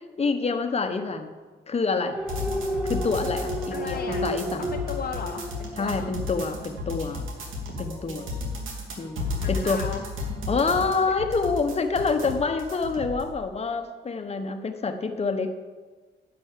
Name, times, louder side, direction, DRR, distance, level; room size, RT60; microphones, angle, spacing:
voice 1, 0.2-1.3 1.7-2.2 2.8-4.7 5.8-7.2 7.8-8.2 9.0-9.8 10.5-15.5, left 4 dB, 30° left, 7 dB, 1.2 m, -27 dB
sound 1, 2.1-6.6 7.0-7.1, right 1 dB, 5° right, 0.9 m, -32 dB
sound 2, 2.3-13.3, left 3 dB, 85° right, 2.6 m, -33 dB
voice 2, 3.7-4.3 4.6-6.1 8.0-8.7 9.4-10.0, left 6 dB, 50° left, 3 dB, 0.8 m, -37 dB
11.0 x 6.2 x 8.3 m, 1.4 s
cardioid pair, 90°, 20 cm